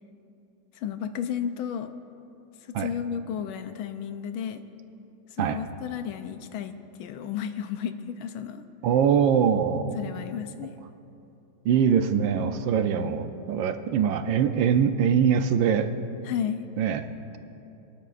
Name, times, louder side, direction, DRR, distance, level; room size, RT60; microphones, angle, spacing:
voice 1, 0.8-1.9 2.7-4.6 5.4-8.6 9.9-10.7 16.2-16.6, left 8 dB, 90° left, 9 dB, 1.5 m, -33 dB
voice 2, 8.8-10.0 11.6-15.9 16.8-17.0, right 7 dB, 75° right, 8 dB, 1.3 m, -23 dB
24.5 x 12.0 x 2.5 m, 2.8 s
omnidirectional pair, 2.2 m